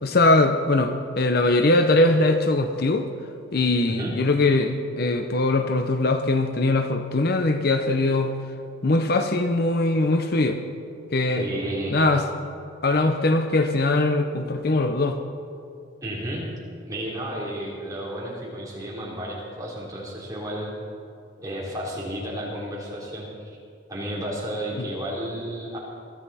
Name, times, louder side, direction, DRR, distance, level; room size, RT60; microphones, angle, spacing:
voice 1, 0.0-3.1 3.5-8.3 8.8-10.6 11.1-11.5 11.9-12.3 12.8-15.2 24.8-24.9, left 2 dB, 50° left, 7 dB, 0.7 m, -21 dB
voice 2, 11.3-12.0 16.0-16.5 16.8-20.7 21.4-23.6 23.9-25.8, right 1 dB, 20° right, -5 dB, 3.4 m, -32 dB
22.5 x 13.5 x 4.2 m, 2.4 s
head